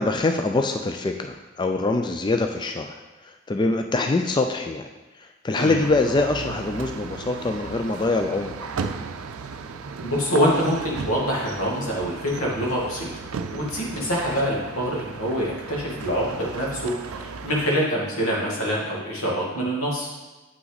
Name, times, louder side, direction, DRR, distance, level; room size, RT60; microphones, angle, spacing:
voice 1, 0.0-4.9 5.1-8.5, left 3 dB, 20° left, 5 dB, 0.3 m, -24 dB
sound 1, 5.8-17.7, right 4 dB, 85° right, 0.5 m, -35 dB
voice 2, 10.0-13.1 13.5-20.1, equal, 90° left, -3 dB, 2.1 m, -25 dB
8.1 x 5.8 x 4.0 m, 1.2 s
head